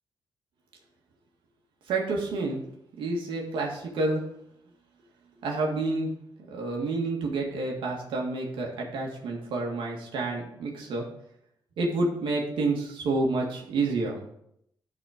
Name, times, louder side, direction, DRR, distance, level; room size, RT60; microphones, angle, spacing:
voice 1, 1.9-2.6 3.0-4.2 5.4-6.1 6.5-11.0 11.8-14.2, right 3 dB, 85° right, -1 dB, 1.9 m, -29 dB
11.0 x 4.3 x 5.1 m, 0.75 s
cardioid pair, 140°, 8 cm